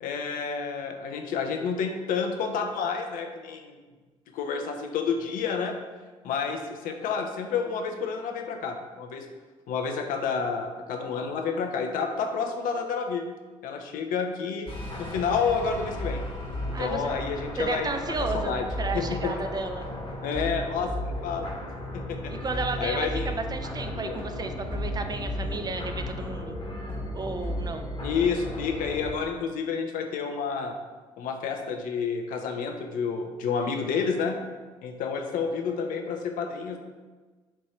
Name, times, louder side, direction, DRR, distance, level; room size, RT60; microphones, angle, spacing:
voice 1, 0.0-3.8 4.3-5.7 6.2-9.3 9.7-13.2 13.6-14.7 15.0-16.2 16.6-18.6 18.9-19.3 20.2-21.5 21.9-22.3 22.8-23.3 24.0-24.2 28.0-30.7 31.2-34.4 34.8-36.8, left 5 dB, 60° left, 4 dB, 0.5 m, -29 dB
sound 1, 14.7-29.1, left 1 dB, 35° left, 1.0 m, -34 dB
voice 2, 16.7-17.1 17.6-19.9 22.4-26.6 27.1-27.9, right 3 dB, 25° right, 6 dB, 0.4 m, -33 dB
4.3 x 2.6 x 3.2 m, 1.4 s
hypercardioid pair, 45°, 16 cm